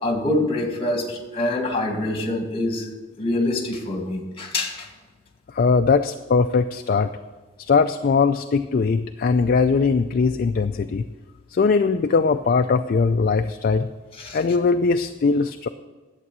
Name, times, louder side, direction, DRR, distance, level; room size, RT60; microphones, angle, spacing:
voice 1, 0.0-2.9 3.2-4.9 14.2-14.4, left 1 dB, 30° left, 3 dB, 1.9 m, -25 dB
voice 2, 5.5-7.1 7.7-11.0 11.5-13.9 14.3-15.7, left 4 dB, 50° left, 8 dB, 0.4 m, -20 dB
11.5 x 8.2 x 6.1 m, 1.3 s
head